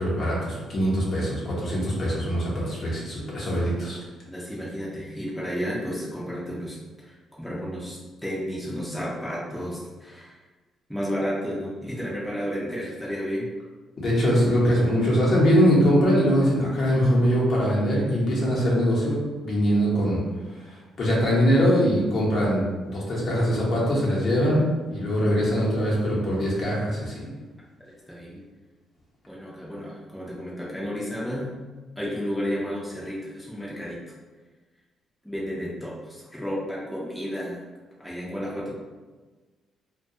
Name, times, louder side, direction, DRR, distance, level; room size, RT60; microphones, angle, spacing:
voice 1, 0.0-4.0 14.0-20.2 20.5-22.6 22.9-27.3, equal, 50° left, -5 dB, 0.8 m, -22 dB
voice 2, 4.2-10.4 10.9-13.5 27.8-28.4 29.3-31.5 32.0-34.0 35.2-37.6 38.0-38.7, equal, 5° left, -6 dB, 0.6 m, -32 dB
2.3 x 2.2 x 2.7 m, 1.3 s
cardioid pair, 90°, 0 cm